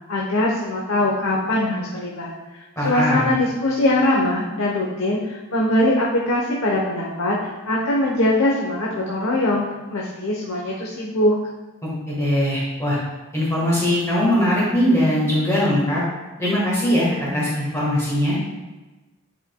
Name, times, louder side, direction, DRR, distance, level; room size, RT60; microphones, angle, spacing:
voice 1, 0.1-9.6 9.9-11.3, left 1 dB, 75° left, -2 dB, 0.8 m, -22 dB
voice 2, 2.7-3.3 11.8-13.0 13.3-16.0 16.4-18.4, equal, 15° left, -7 dB, 1.4 m, -21 dB
10.0 x 4.8 x 2.2 m, 1.1 s
head